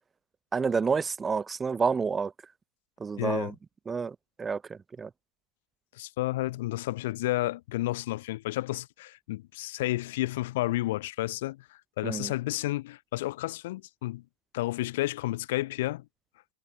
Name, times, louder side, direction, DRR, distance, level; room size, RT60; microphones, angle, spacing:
voice 1, 0.5-2.3 3.0-3.5 3.9-5.1 12.0-12.3, right 5 dB, 15° right, 0.4 m, -29 dB
voice 2, 3.2-3.5 5.9-14.2 14.5-16.0, left 17 dB, 55° left, 0.6 m, -31 dB
figure-of-eight pair, 90°, 0 cm